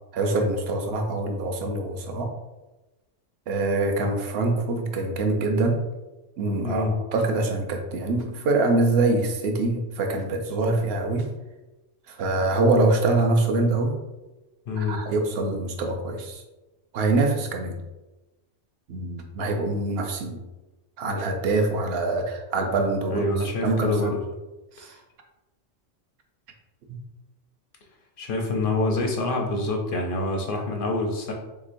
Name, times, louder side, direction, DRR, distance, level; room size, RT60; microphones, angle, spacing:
voice 1, 0.1-2.3 3.5-5.8 6.4-6.9 7.1-11.3 12.1-14.0 14.8-16.4 16.9-17.8 18.9-20.4 21.0-24.1 24.8-25.0 26.9-27.0, right 2 dB, 65° right, 4 dB, 0.7 m, -24 dB
voice 2, 6.6-6.9 14.7-15.0 23.1-24.2 28.2-31.3, left 2 dB, 60° left, 1 dB, 0.6 m, -26 dB
3.6 x 2.9 x 2.5 m, 1.1 s
omnidirectional pair, 1.2 m